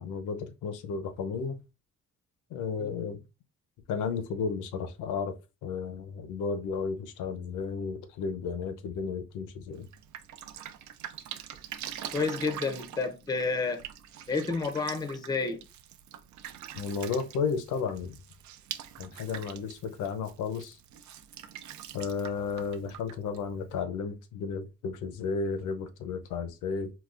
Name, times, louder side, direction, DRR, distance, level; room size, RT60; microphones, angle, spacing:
voice 1, 0.0-1.6 2.5-3.2 3.9-5.3 5.6-9.9 16.7-18.1 19.0-20.8 21.9-26.9, left 5 dB, 85° left, 0.6 m, -33 dB
Drip, 9.7-23.8, right 10 dB, 70° right, 0.5 m, -44 dB
voice 2, 12.1-13.8 14.3-15.6, left 4 dB, 15° left, 0.5 m, -30 dB
3.9 x 2.2 x 2.4 m
cardioid pair, 90°, 30 cm